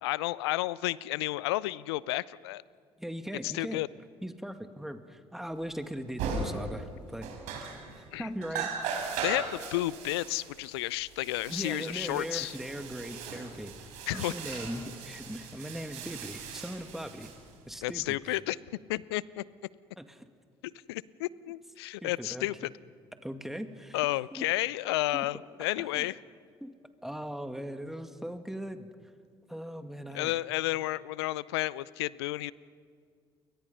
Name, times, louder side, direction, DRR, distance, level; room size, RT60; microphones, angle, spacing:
voice 1, 0.0-2.6 3.4-3.9 8.1-8.3 9.2-12.6 14.1-14.6 17.8-18.6 18.9-19.4 20.6-22.7 23.9-26.2 30.1-32.5, left 18 dB, 80° left, 21 dB, 0.5 m, -32 dB
voice 2, 3.0-3.8 4.2-7.3 8.0-8.7 11.5-13.7 14.1-17.3 17.7-18.4 20.0-20.2 22.0-22.5 23.2-24.0 24.3-24.5 25.1-25.3 25.8-26.1 26.6-26.7 27.0-28.9 29.5-30.4, equal, 5° right, 7 dB, 2.1 m, -39 dB
sound 1, 5.8-5.9 6.2-6.9 7.2-8.1 8.4-17.9, right 5 dB, 70° right, 5.2 m, -38 dB
29.5 x 24.0 x 5.6 m, 2.1 s
hypercardioid pair, 55°, 13 cm